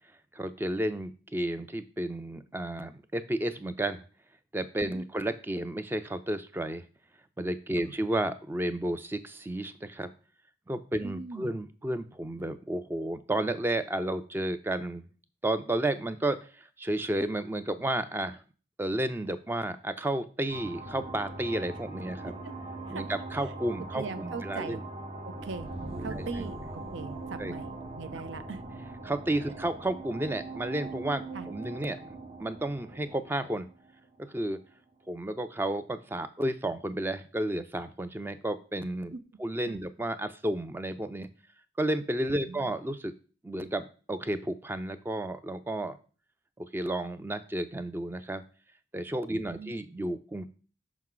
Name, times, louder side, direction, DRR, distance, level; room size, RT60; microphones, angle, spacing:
voice 1, 0.3-4.0 4.5-6.8 7.4-10.1 10.7-15.0 15.4-18.4 18.8-22.3 22.9-24.8 26.2-26.3 27.4-27.5 29.0-33.7 34.2-34.6 35.1-39.1 39.4-41.3 41.8-43.1 43.4-46.0 46.6-48.4 48.9-50.5, right 1 dB, 10° right, 11 dB, 0.4 m, -32 dB
voice 2, 11.0-11.6 22.2-22.5 22.9-23.1 23.4-23.5 23.9-24.8 25.2-25.7 26.0-28.6 29.6-29.7 31.3-31.5 39.1-39.2 39.7-39.8 42.3-42.7 49.3-49.7, right 4 dB, 80° right, 11 dB, 0.6 m, -41 dB
sound 1, 20.5-34.6, right 2 dB, 35° right, 0.8 m, -41 dB
6.0 x 5.5 x 3.8 m, 0.38 s
head